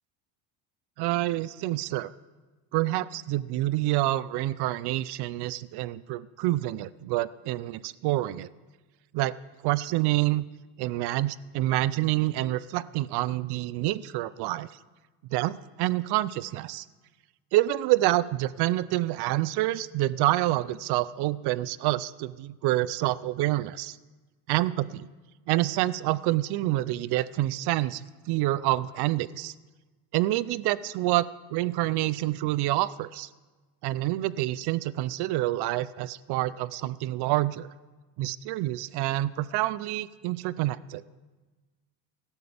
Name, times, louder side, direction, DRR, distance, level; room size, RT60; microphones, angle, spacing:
voice 1, 1.0-2.1 2.7-8.5 9.1-9.3 9.6-10.5 10.8-14.7 15.3-16.9 17.5-24.0 24.5-25.1 25.5-29.5 30.1-33.3 33.8-37.7 38.2-41.0, right 16 dB, 60° right, 19 dB, 0.5 m, -27 dB
17.5 x 12.5 x 3.4 m, 1.3 s
cardioid pair, 115°, 44 cm